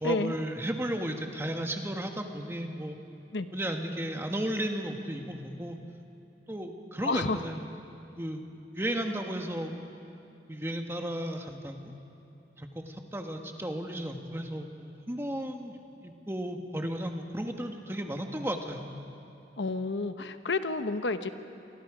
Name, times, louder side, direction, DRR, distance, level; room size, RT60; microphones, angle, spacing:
voice 1, 0.0-3.0 3.5-5.8 6.5-7.7 8.2-8.4 8.7-9.7 10.5-11.9 12.6-18.8, right 1 dB, 15° right, 3 dB, 1.6 m, -34 dB
voice 2, 7.0-7.4 19.6-21.3, left 3 dB, 85° left, 9 dB, 1.0 m, -30 dB
29.0 x 25.0 x 5.0 m, 2.7 s
head